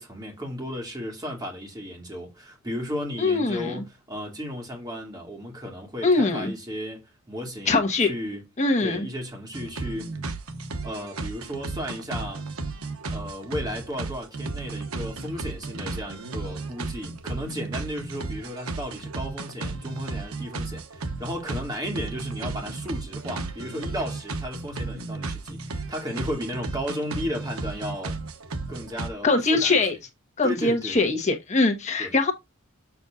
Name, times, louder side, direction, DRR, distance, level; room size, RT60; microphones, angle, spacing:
voice 1, 0.0-8.4 8.8-10.1 10.8-12.4 13.1-28.2 28.7-29.8 30.4-31.0 32.0-32.1, equal, 20° right, 2.5 m, -34 dB
voice 2, 3.2-3.8 6.0-6.5 7.7-8.1 8.6-9.1 29.2-30.0 30.4-32.3, left 3 dB, 35° left, 1.2 m, -22 dB
sound 1, 9.5-29.1, right 3 dB, 80° right, 1.1 m, -34 dB
7.1 x 6.8 x 2.5 m
head